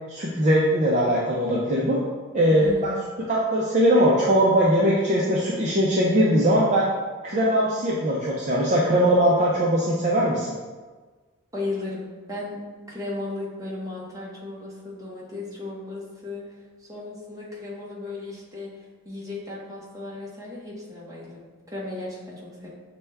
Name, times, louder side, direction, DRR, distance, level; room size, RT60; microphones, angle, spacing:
voice 1, 0.1-2.0 2.3-2.9 3.3-6.9 7.2-10.6, equal, 30° right, -5 dB, 0.5 m, -21 dB
voice 2, 2.5-3.1 11.5-16.4 16.8-18.7 19.0-22.7, left 2 dB, 15° right, -5 dB, 0.9 m, -35 dB
6.6 x 2.2 x 3.3 m, 1.4 s
head